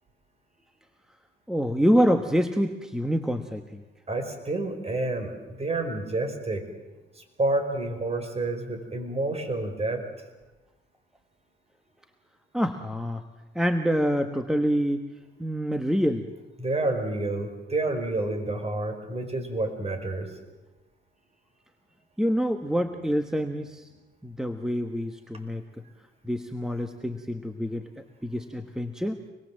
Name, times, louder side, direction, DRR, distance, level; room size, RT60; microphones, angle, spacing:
voice 1, 1.5-3.8 12.5-13.2 13.5-15.0 15.4-16.3 22.2-23.9 24.2-25.6 26.2-27.9 28.2-29.2, equal, 5° right, 7 dB, 1.3 m, -26 dB
voice 2, 4.1-6.7 7.2-10.1 16.6-20.3, right 2 dB, 30° right, 6 dB, 5.1 m, -29 dB
25.5 x 21.0 x 7.6 m, 1.1 s
cardioid pair, 90°, 20 cm